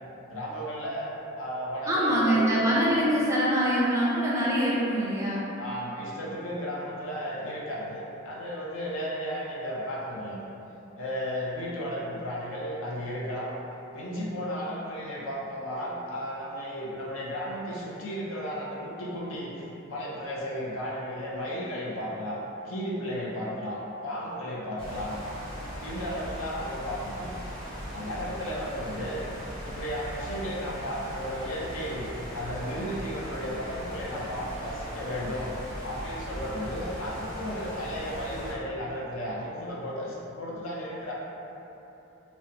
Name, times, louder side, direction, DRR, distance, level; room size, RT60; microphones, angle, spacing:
voice 1, 0.3-2.6 5.6-10.5 11.0-13.5 13.9-25.2 25.8-27.3 27.9-29.2 29.6-32.1 32.3-35.5 35.8-41.1, equal, 70° left, -5 dB, 0.5 m, -34 dB
voice 2, 1.9-5.4, equal, 15° right, -7 dB, 0.3 m, -24 dB
sound 1, 24.8-38.5, equal, 5° left, 0.8 m, -39 dB
2.8 x 2.2 x 2.5 m, 3.0 s
head